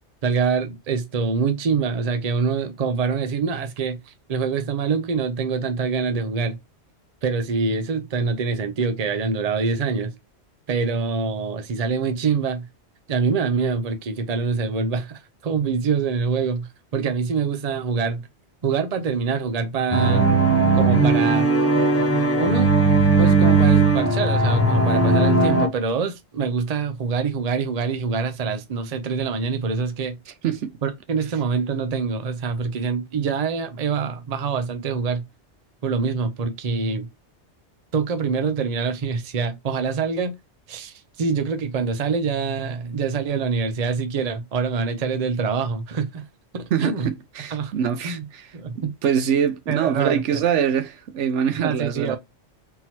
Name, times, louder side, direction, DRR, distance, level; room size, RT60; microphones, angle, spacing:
voice 1, 0.2-6.6 7.2-10.1 10.7-12.7 13.1-18.3 18.6-20.3 20.7-21.5 22.4-22.7 23.1-30.2 30.8-35.2 35.8-37.1 37.9-40.3 40.7-46.2 46.5-47.1 47.5-47.7 48.0-48.2 48.5-48.9 49.7-50.4 51.6-52.2, right 5 dB, 40° right, 0.7 m, -25 dB
sound 1, 19.9-25.7, right 3 dB, 20° left, 0.4 m, -18 dB
voice 2, 46.7-48.5 48.8-52.2, right 8 dB, 90° right, 1.0 m, -24 dB
3.8 x 2.9 x 4.2 m
omnidirectional pair, 1.2 m